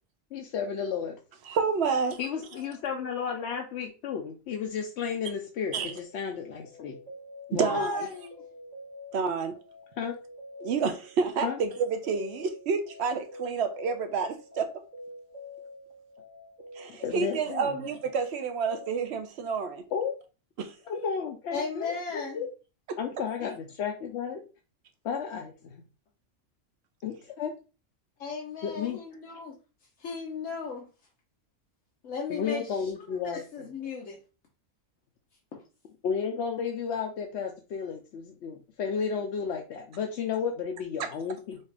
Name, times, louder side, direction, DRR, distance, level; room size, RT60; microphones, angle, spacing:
voice 1, 0.3-1.2 2.2-7.0 7.5-7.7 10.0-10.1 11.4-11.6 16.9-17.8 19.9-20.2 20.9-22.5 23.0-24.5 25.0-25.8 27.0-27.5 28.6-29.0 32.3-33.4 36.0-41.6, left 6 dB, 70° left, 0.8 m, -33 dB
voice 2, 1.5-2.2 5.7-5.9 7.5-8.1 9.1-9.6 10.6-14.7 16.8-19.8 20.6-20.8 22.9-23.0 41.0-41.1, right 5 dB, 65° right, 0.9 m, -29 dB
sound 1, 5.8-19.1, left 2 dB, 35° right, 1.2 m, -47 dB
voice 3, 7.6-8.4 21.5-22.4 23.4-23.5 28.2-29.5 30.0-30.9 32.0-32.9 33.2-34.2, left 5 dB, 90° left, 1.3 m, -36 dB
5.4 x 2.5 x 3.3 m
omnidirectional pair, 1.3 m